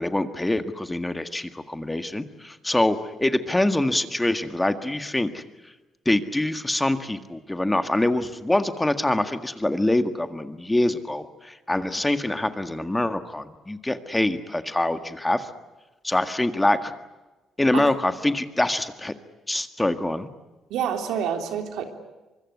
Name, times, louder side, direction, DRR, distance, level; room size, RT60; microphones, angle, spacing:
voice 1, 0.0-5.7 6.1-15.5 16.0-16.9 17.6-19.1 19.5-20.3, left 1 dB, 10° left, 9 dB, 1.8 m, -25 dB
voice 2, 20.7-21.8, right 8 dB, 85° right, 5 dB, 3.4 m, -27 dB
25.0 x 22.0 x 9.6 m, 1.1 s
cardioid pair, 90°, 0 cm